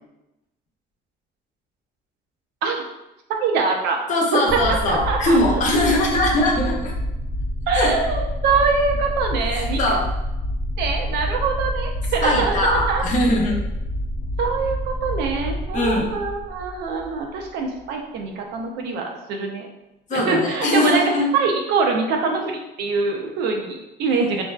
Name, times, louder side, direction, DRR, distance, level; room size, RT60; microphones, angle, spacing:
voice 1, 3.4-4.0 4.3-5.6 7.7-10.0 10.8-13.0 14.4-19.7 20.1-21.0 21.3-24.4, right 4 dB, 80° right, 2 dB, 0.5 m, -24 dB
voice 2, 4.1-6.9 7.7-7.9 9.5-10.0 12.2-13.6 15.7-16.1 20.1-21.3, left 1 dB, 50° left, -1 dB, 0.6 m, -21 dB
sound 1, 4.5-17.5, equal, 25° left, 0.9 m, -27 dB
2.5 x 2.2 x 2.2 m, 0.93 s
cardioid pair, 110°, 17 cm